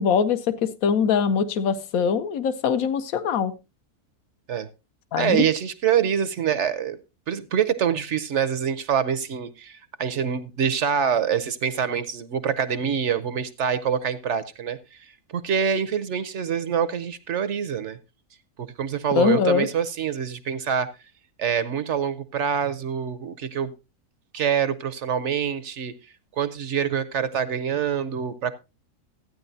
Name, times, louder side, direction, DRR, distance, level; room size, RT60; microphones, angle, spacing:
voice 1, 0.0-3.5 5.1-5.5 19.1-19.7, left 7 dB, 70° left, 1.2 m, -22 dB
voice 2, 5.2-7.0 7.3-15.1 15.3-18.0 18.6-20.9 21.4-23.7 24.3-25.9 26.4-28.6, right 8 dB, 60° right, 0.9 m, -25 dB
14.5 x 9.5 x 2.7 m
omnidirectional pair, 1.6 m